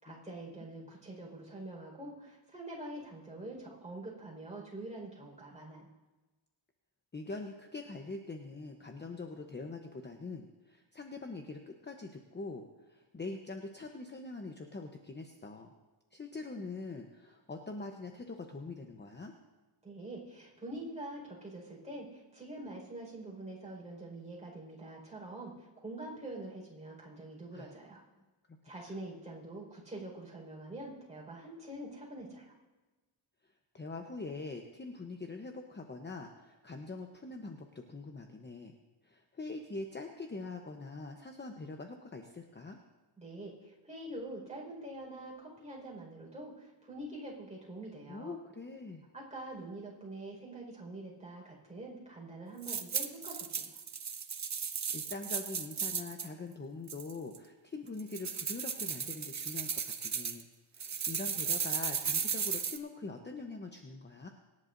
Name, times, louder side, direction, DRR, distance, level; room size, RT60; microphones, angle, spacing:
voice 1, 0.0-5.9 19.8-28.0 28.6-32.5 43.2-48.4 49.1-53.8, right 1 dB, 15° right, -3 dB, 4.9 m, -45 dB
voice 2, 7.1-15.7 16.1-19.3 27.5-27.7 28.9-29.0 33.4-38.7 39.0-42.8 48.1-49.0 54.9-60.4 60.7-64.3, left 3 dB, 25° left, 4 dB, 0.9 m, -43 dB
sound 1, 52.6-56.3 56.9-57.4 58.0-60.4 60.8-62.8, right 6 dB, 35° right, 0.9 m, -35 dB
24.5 x 10.5 x 2.7 m, 1.2 s
cardioid pair, 100°, 46 cm